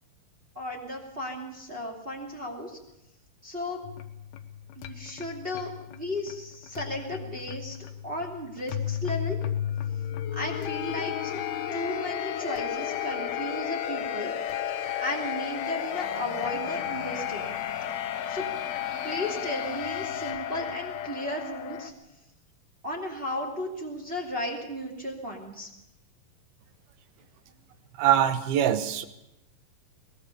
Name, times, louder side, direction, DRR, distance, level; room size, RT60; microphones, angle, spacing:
voice 1, 0.5-2.8 3.4-3.9 4.8-9.4 10.3-11.4 11.7-14.3 14.7-17.6 18.3-18.5 19.0-21.9 22.8-25.7, left 1 dB, 15° right, 0 dB, 2.5 m, -35 dB
sound 1, 3.8-21.9, left 10 dB, 90° left, 3.1 m, -33 dB
voice 2, 28.0-29.1, right 10 dB, 85° right, 12 dB, 3.2 m, -23 dB
22.0 x 20.0 x 7.0 m, 0.88 s
omnidirectional pair, 4.3 m